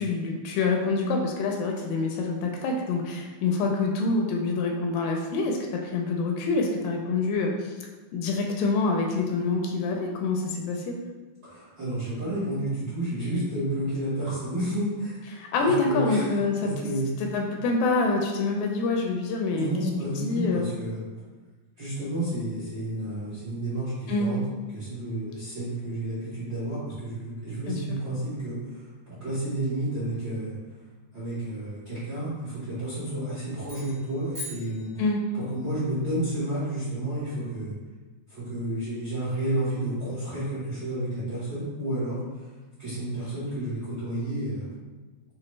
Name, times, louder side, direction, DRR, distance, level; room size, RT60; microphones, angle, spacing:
voice 1, 0.0-7.7 8.1-10.9 15.3-16.7 17.2-19.7 20.1-20.7 24.1-24.3 27.7-27.8 35.0-35.2, left 3 dB, 80° left, 1 dB, 2.2 m, -26 dB
voice 2, 11.4-16.3 16.6-17.1 19.5-21.0 21.8-24.4 24.7-30.5 31.1-34.9 35.3-37.7 38.3-42.5 42.8-44.7, right 1 dB, 65° right, -12 dB, 1.1 m, -31 dB
sound 1, 33.6-35.6, left 2 dB, 85° right, 0.8 m, -42 dB
6.0 x 2.4 x 3.1 m, 1.3 s
omnidirectional pair, 4.1 m